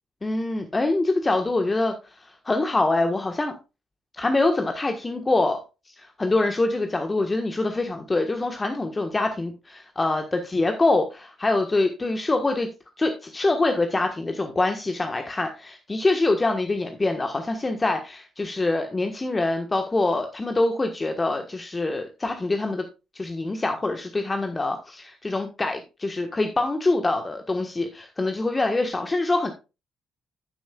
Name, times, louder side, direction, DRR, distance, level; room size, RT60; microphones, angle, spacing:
voice 1, 0.2-3.5 4.1-5.6 6.0-12.7 13.0-22.8 23.1-29.5, left 2 dB, 25° left, 5 dB, 1.4 m, -25 dB
11.0 x 9.3 x 2.4 m, 0.28 s
hypercardioid pair, 45°, 0 cm